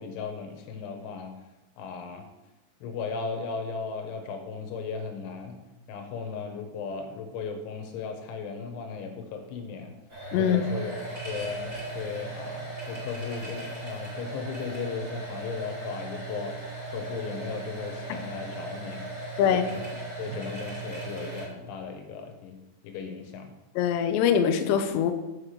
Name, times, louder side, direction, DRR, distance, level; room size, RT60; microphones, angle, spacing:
voice 1, 0.0-1.3 1.8-2.3 2.8-5.6 5.9-9.9 10.4-10.9 11.2-16.6 16.9-22.6 22.8-23.6, left 5 dB, 75° left, 4 dB, 3.4 m, -36 dB
sound 1, 10.1-21.4, right 2 dB, 30° right, 1.0 m, -37 dB
voice 2, 10.3-10.7 19.4-19.6 23.8-25.1, left 8 dB, 90° left, 7 dB, 2.4 m, -23 dB
7.7 x 6.0 x 6.7 m, 1.0 s
omnidirectional pair, 5.9 m